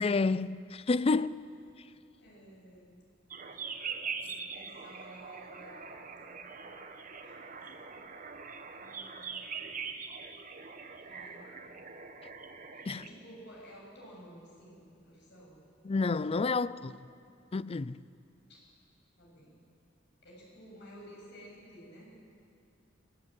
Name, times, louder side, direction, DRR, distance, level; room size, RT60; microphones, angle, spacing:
voice 1, 0.0-1.4 12.2-12.3 12.9-13.0 15.8-17.0 17.5-18.0, left 3 dB, 30° left, 0.4 m, -29 dB
voice 2, 2.2-3.0 4.2-6.8 7.2-7.6 7.9-8.1 8.7-9.4 11.0-11.6 12.7-15.6 16.0-16.6 18.5-18.6 19.2-19.6 20.2-22.1, equal, 65° left, 7.8 m, -54 dB
sound 1, 3.3-13.1, right 5 dB, 45° right, 1.4 m, -43 dB
24.0 x 14.0 x 9.1 m
head